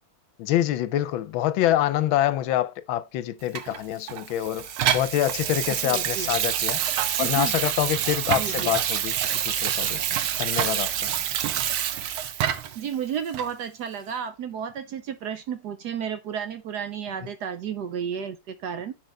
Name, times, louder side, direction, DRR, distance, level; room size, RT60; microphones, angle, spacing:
voice 1, 0.4-6.8 7.2-10.0 10.4-11.1, left 13 dB, 80° left, 1.4 m, -26 dB
Water tap faucet / Sink (filling or washing), 3.5-12.8 13.3-13.5, right 10 dB, 85° right, 1.6 m, -27 dB
voice 2, 5.7-6.3 7.2-7.6 8.3-8.7 12.7-18.9, right 8 dB, 70° right, 1.0 m, -32 dB
10.0 x 4.0 x 3.3 m
omnidirectional pair, 2.2 m